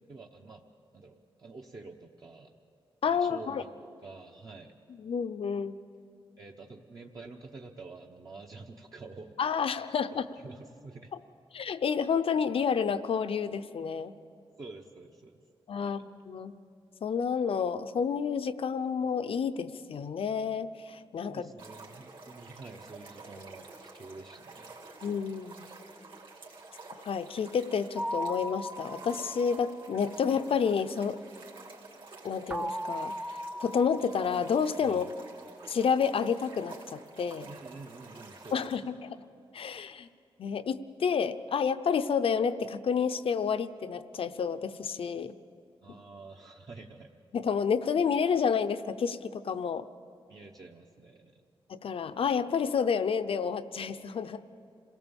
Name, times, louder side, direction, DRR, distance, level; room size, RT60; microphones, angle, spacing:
voice 1, 0.1-0.6 0.9-2.5 3.0-4.8 6.4-9.4 9.9-11.1 14.6-15.4 15.8-16.0 21.2-24.7 34.8-35.1 37.4-38.9 45.8-47.1 50.3-51.4, right 3 dB, 40° right, 0 dB, 1.0 m, -48 dB
voice 2, 3.0-3.6 5.0-5.8 9.4-10.3 11.5-14.1 15.7-16.5 17.0-21.5 25.0-25.7 27.0-31.2 32.2-35.1 35.7-37.5 38.5-39.1 39.5-40.1 40.4-45.3 45.9-46.0 47.3-49.9 51.7-54.6, left 6 dB, 70° left, 12 dB, 0.7 m, -30 dB
sound 1, 21.6-38.8, right 3 dB, 60° right, 2.8 m, -50 dB
sound 2, 28.0-30.8 32.5-35.3, equal, 15° right, 0.6 m, -39 dB
27.5 x 18.0 x 7.1 m, 2.7 s
wide cardioid pair, 175°, 10 cm